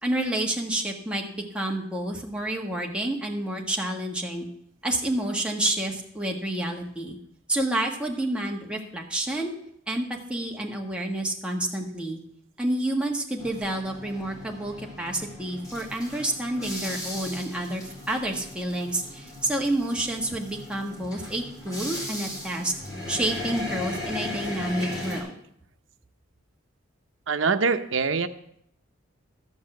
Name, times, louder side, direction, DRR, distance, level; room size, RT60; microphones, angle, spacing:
voice 1, 0.0-4.5 4.8-7.2 7.5-9.5 9.9-12.2 12.6-22.7 23.1-25.3, right 1 dB, 5° right, 0 dB, 1.4 m, -29 dB
sound 1, 13.4-25.2, left 1 dB, 20° left, 4.4 m, -37 dB
voice 2, 27.3-28.3, right 4 dB, 75° right, 10 dB, 0.7 m, -24 dB
13.5 x 5.5 x 7.8 m, 0.72 s
head